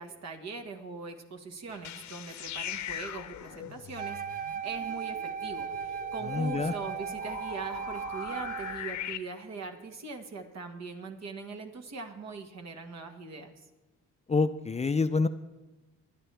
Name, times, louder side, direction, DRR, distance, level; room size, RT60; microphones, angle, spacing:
voice 1, 0.0-13.7, right 4 dB, 60° right, 4 dB, 1.8 m, -41 dB
sound 1, 1.7-9.2, left 10 dB, 70° left, 0.9 m, -41 dB
Wind instrument woodwind instrument, 4.0-8.9, right 7 dB, 30° right, 0.6 m, -37 dB
voice 2, 6.3-6.7 14.3-15.3, left 4 dB, 20° left, 10 dB, 0.5 m, -27 dB
24.0 x 9.9 x 3.4 m, 1.1 s
cardioid pair, 90°, 30 cm